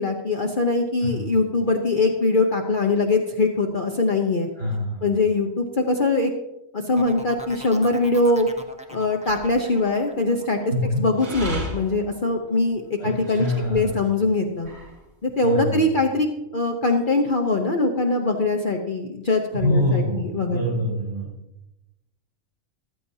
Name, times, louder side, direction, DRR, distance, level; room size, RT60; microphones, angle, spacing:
voice 1, 0.0-4.5 5.0-6.3 6.7-8.5 8.9-10.6 11.0-14.7 15.2-16.3 16.5-20.6, left 2 dB, 45° left, 3 dB, 1.0 m, -22 dB
voice 2, 4.6-5.0 10.7-11.0 13.0-13.1 13.4-14.0 15.4-15.9 19.5-21.3, left 1 dB, 70° right, -6 dB, 4.2 m, -25 dB
sound 1, 7.0-12.6 13.0-13.4, right 1 dB, 5° right, 0.7 m, -42 dB
sound 2, 7.8-8.1 9.2-10.0 11.2-14.0 14.4-15.1, right 1 dB, 50° right, 2.8 m, -36 dB
14.0 x 13.5 x 2.8 m, 0.91 s
omnidirectional pair, 1.4 m